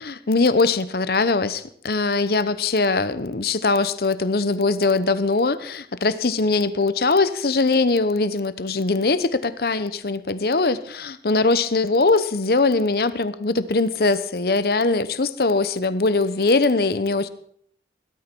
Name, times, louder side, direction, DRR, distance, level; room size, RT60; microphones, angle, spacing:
voice 1, 0.0-17.3, left 3 dB, 60° left, 14 dB, 0.8 m, -21 dB
17.5 x 12.0 x 4.5 m, 0.63 s
head